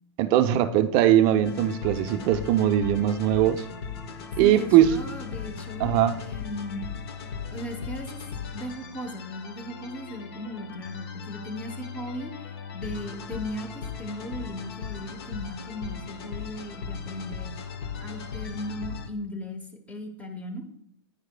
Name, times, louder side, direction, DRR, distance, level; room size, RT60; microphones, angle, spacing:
voice 1, 0.2-3.7 4.4-5.0 5.8-6.2, right 11 dB, 40° right, 0.4 m, -20 dB
sound 1, 1.4-19.1, left 6 dB, 65° left, 0.8 m, -38 dB
voice 2, 4.4-6.8 7.5-8.2 8.5-17.5 18.0-19.6 19.9-20.7, equal, 10° left, 0.9 m, -37 dB
10.0 x 4.7 x 2.2 m
hypercardioid pair, 120°, 14 cm